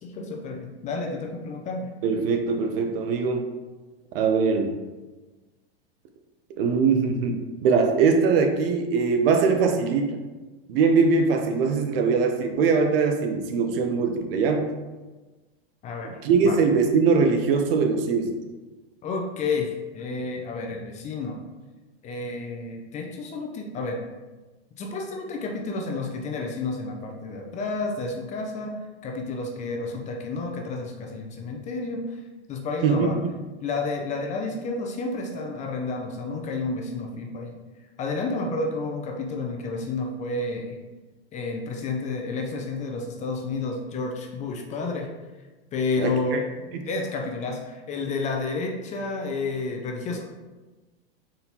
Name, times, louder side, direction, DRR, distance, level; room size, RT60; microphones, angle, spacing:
voice 1, 0.0-1.9 15.8-16.1 16.4-16.6 19.0-21.4 22.0-24.0 24.8-28.8 29.0-32.2 32.5-33.2 33.6-37.5 38.0-40.8 41.3-45.1 45.7-46.5 46.9-50.2, left 3 dB, 25° left, 1 dB, 0.5 m, -30 dB
voice 2, 2.0-3.5 4.1-4.7 6.6-10.2 10.7-14.7 16.2-18.4 32.8-33.1 46.0-46.4 46.8-46.9, right 5 dB, 65° right, 5 dB, 0.7 m, -22 dB
4.2 x 3.7 x 2.9 m, 1.2 s
supercardioid pair, 130°, 31 cm